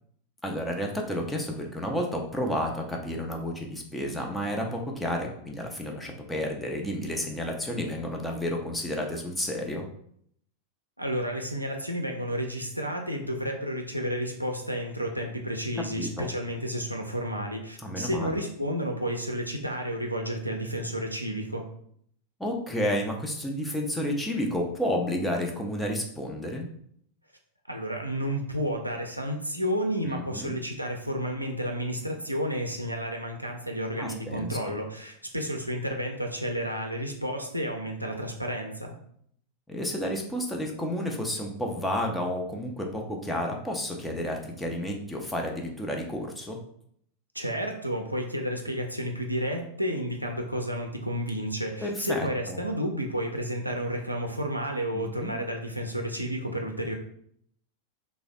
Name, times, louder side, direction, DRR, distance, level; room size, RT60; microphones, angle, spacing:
voice 1, 0.4-9.9 15.8-16.3 17.8-18.4 22.4-26.7 30.0-30.5 34.0-34.7 39.7-46.6 51.8-52.6 54.9-55.4, equal, 5° left, 0 dB, 0.6 m, -31 dB
voice 2, 11.0-21.7 27.7-39.0 47.3-56.9, equal, 90° right, 2 dB, 0.4 m, -31 dB
3.2 x 2.0 x 3.7 m, 0.67 s
figure-of-eight pair, 90°, 0 cm